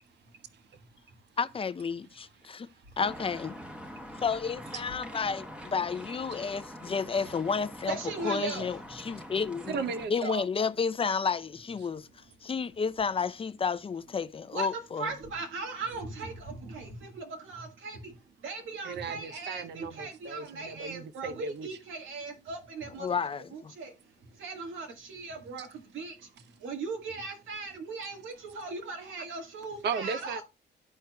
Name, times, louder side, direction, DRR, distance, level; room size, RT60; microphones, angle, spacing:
voice 1, 1.4-2.7 3.0-3.6 4.2-9.8 10.1-15.1 22.8-23.7, left 5 dB, 30° left, 0.5 m, -31 dB
sound 1, 3.0-10.1, equal, 5° right, 1.0 m, -44 dB
voice 2, 7.9-8.6 14.5-14.7 15.0-18.2 18.4-23.1 23.5-23.9 24.4-25.7 25.9-26.2 26.6-30.2, right 4 dB, 80° right, 1.6 m, -38 dB
voice 3, 9.7-10.5 18.8-21.8 29.8-30.4, right 6 dB, 60° right, 0.6 m, -36 dB
13.0 x 4.5 x 2.2 m
cardioid pair, 90°, 20 cm